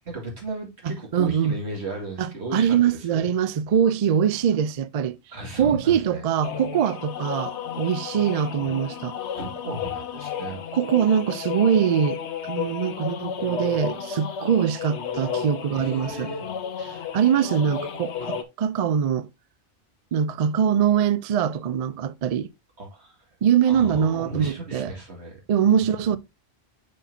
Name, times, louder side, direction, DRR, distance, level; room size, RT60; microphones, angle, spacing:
voice 1, 0.1-2.8 3.1-3.3 5.3-6.3 9.3-10.6 15.7-16.5 16.9-17.1 22.8-23.2 23.6-25.4 25.7-25.9, right 2 dB, 75° right, 2.3 m, -35 dB
voice 2, 0.8-1.6 2.2-5.2 5.6-9.2 10.7-16.3 16.8-19.3 20.1-22.5 23.4-24.9 25.5-26.2, right 8 dB, 60° right, 0.4 m, -23 dB
sound 1, 6.4-18.4, left 7 dB, 85° left, 1.1 m, -33 dB
6.5 x 5.8 x 2.6 m
omnidirectional pair, 1.1 m